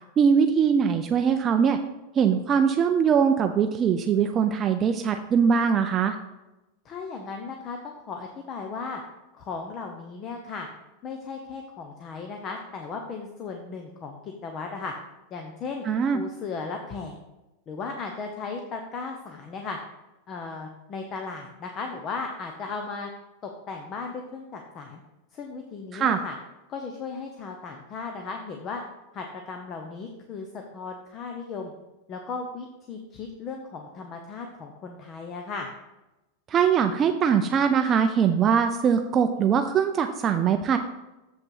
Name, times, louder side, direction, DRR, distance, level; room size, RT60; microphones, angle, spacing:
voice 1, 0.2-1.8 2.1-6.2 15.8-16.2 25.9-26.2 36.5-40.8, right 7 dB, 25° right, 6 dB, 0.4 m, -22 dB
voice 2, 6.8-9.0 9.3-10.7 11.0-14.9 15.3-15.8 16.1-17.2 17.7-19.8 20.3-23.1 23.4-25.0 25.3-26.4 26.7-28.8 29.1-31.7 32.1-35.7, left 4 dB, 30° left, 3 dB, 0.7 m, -36 dB
7.4 x 5.4 x 5.5 m, 1.0 s
supercardioid pair, 155°, 0 cm